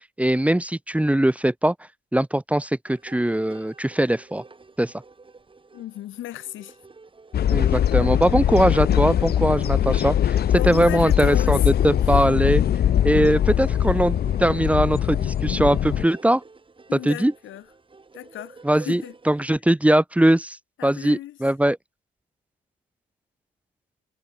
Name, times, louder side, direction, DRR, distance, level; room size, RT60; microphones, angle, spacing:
voice 1, 0.2-1.7 2.1-4.4 4.8-4.9 7.5-10.4 10.7-12.6 13.0-16.4 17.0-17.3 18.6-20.6 20.8-21.8, right 1 dB, 5° right, 1.1 m, -21 dB
sound 1, 2.9-19.5, right 3 dB, 25° right, 5.2 m, -47 dB
voice 2, 5.7-6.8 10.5-11.9 16.9-17.7 18.1-19.1 20.8-21.4, left 13 dB, 80° left, 2.1 m, -35 dB
sound 2, 7.3-16.0, left 10 dB, 55° left, 0.7 m, -21 dB
cardioid pair, 90°, 20 cm